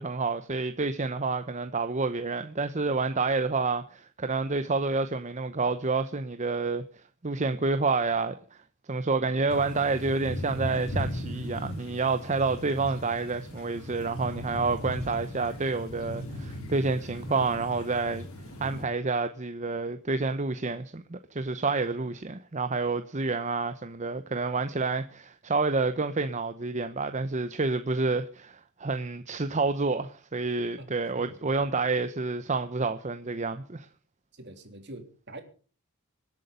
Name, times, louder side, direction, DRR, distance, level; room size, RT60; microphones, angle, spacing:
voice 1, 0.0-6.8 7.2-8.4 8.9-18.3 18.6-33.9, right 3 dB, 35° right, 0.8 m, -29 dB
sound 1, 9.5-18.9, left 1 dB, 80° left, 4.6 m, -37 dB
voice 2, 34.4-35.4, right 1 dB, 55° right, 3.2 m, -44 dB
25.5 x 8.4 x 5.1 m
head